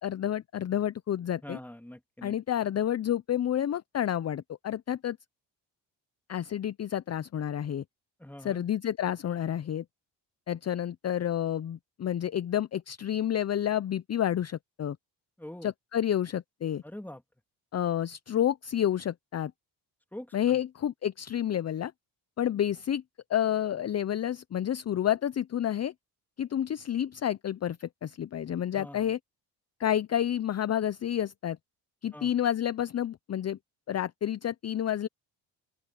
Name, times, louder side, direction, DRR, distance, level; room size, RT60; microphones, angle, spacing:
voice 1, 0.0-1.6 2.2-5.2 6.3-7.8 8.4-9.8 10.5-15.0 15.6-16.8 17.7-19.5 20.3-21.9 22.4-23.0 23.3-25.9 26.4-29.2 29.8-31.6 32.0-33.6 33.9-35.1, left 10 dB, 35° left, 0.6 m, -29 dB
voice 2, 1.4-2.4 8.2-8.6 15.4-15.7 16.8-17.2 20.1-20.6 28.7-29.1 32.1-32.3, left 1 dB, 5° left, 2.8 m, -44 dB
open air
cardioid pair, 75°, 44 cm